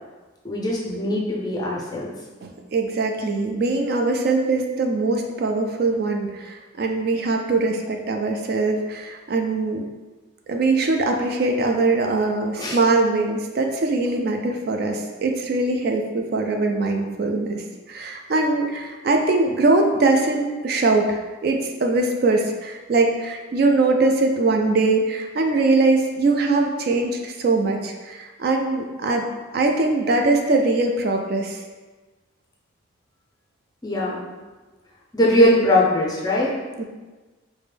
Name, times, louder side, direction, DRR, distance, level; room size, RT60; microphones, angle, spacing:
voice 1, 0.4-2.1 12.5-12.8 33.8-34.2 35.1-36.6, left 1 dB, 20° left, -3 dB, 0.5 m, -20 dB
voice 2, 2.4-9.8 10.5-29.3 29.5-31.6 36.8-36.9, right 3 dB, 50° right, 3 dB, 0.3 m, -22 dB
4.9 x 2.1 x 3.3 m, 1.3 s
head